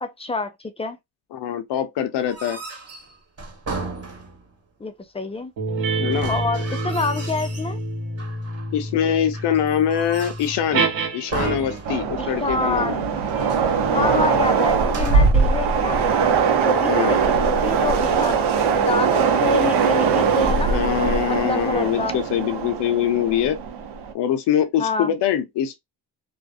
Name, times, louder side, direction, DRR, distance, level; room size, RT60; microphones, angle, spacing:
voice 1, 0.0-1.0 4.8-5.5 6.3-7.8 12.2-13.2 13.9-16.2 16.6-18.4 18.7-20.8 21.3-22.2 24.8-25.1, left 3 dB, 15° left, 0.5 m, -27 dB
voice 2, 1.3-2.6 6.0-6.3 8.7-12.9 13.9-14.2 16.9-17.2 20.7-23.6 24.1-25.8, left 9 dB, 65° left, 0.7 m, -23 dB
sound 1, 2.2-4.6 6.1-7.8 8.2-8.8 9.3-10.7 11.3-12.4 12.7-12.8 13.2-13.8 14.8-15.4, right 4 dB, 35° right, 1.2 m, -35 dB
sound 2, 5.6-12.0 12.7-17.6, right 2 dB, 75° right, 1.3 m, -30 dB
Train, 11.9-24.1, right 5 dB, 60° right, 0.9 m, -21 dB
2.4 x 2.2 x 2.5 m
supercardioid pair, 65°, 45 cm